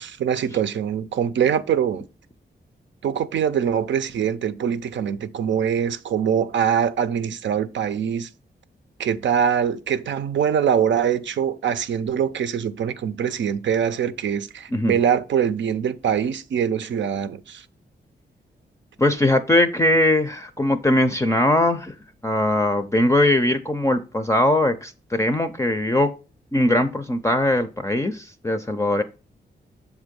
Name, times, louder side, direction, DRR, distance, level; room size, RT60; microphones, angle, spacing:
voice 1, 0.0-2.1 3.0-8.3 9.0-17.7, right 8 dB, 80° right, 0.6 m, -23 dB
voice 2, 19.0-21.9 22.2-26.1 26.5-29.0, left 1 dB, 15° left, 0.4 m, -20 dB
7.2 x 3.7 x 5.2 m
wide cardioid pair, 130°, 19 cm